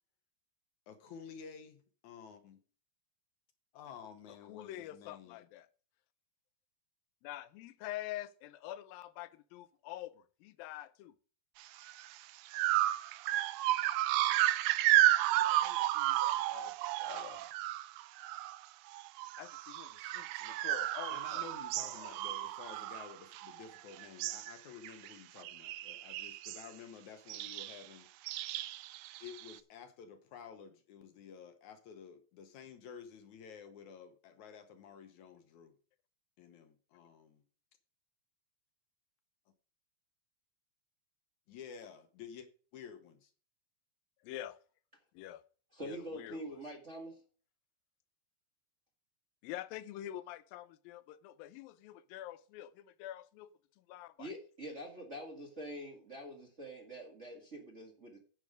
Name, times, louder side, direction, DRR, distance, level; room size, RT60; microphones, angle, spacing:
voice 1, 0.9-2.6 3.7-5.4 21.1-28.1 29.2-35.8 36.4-37.4 41.5-42.5 42.7-43.3, left 7 dB, 70° left, 2.2 m, -52 dB
voice 2, 4.5-5.7 7.2-11.1 15.4-17.6 19.4-21.5 21.9-22.1 44.2-44.6 45.1-45.4 45.8-46.4 49.4-53.5 53.9-54.3, left 13 dB, 90° left, 2.4 m, -46 dB
sound 1, 11.9-12.1 12.5-18.7 18.9-23.7 24.0-24.5 24.8-25.1 25.4-26.7 27.3-27.8 28.3-29.6, right 15 dB, 80° right, 2.1 m, -32 dB
voice 3, 45.7-47.2 54.2-58.2, equal, 30° right, 1.6 m, -45 dB
9.8 x 8.0 x 5.0 m
omnidirectional pair, 4.0 m